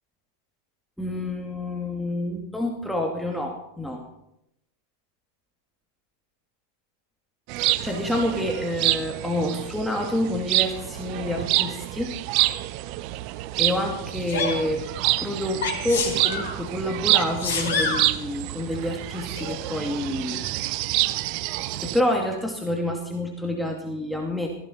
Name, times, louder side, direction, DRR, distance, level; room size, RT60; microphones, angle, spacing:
voice 1, 1.0-4.0 7.6-12.1 13.6-14.9 15.2-20.4 21.8-24.5, left 1 dB, ahead, 0 dB, 2.4 m, -28 dB
sound 1, 7.5-22.0, right 16 dB, 45° right, 0.6 m, -27 dB
Sneeze, 14.3-14.6 15.6-16.5 17.1-18.0 19.3-19.5, left 4 dB, 65° left, 4.1 m, -27 dB
15.5 x 15.5 x 4.5 m, 0.80 s
figure-of-eight pair, 90°, 0 cm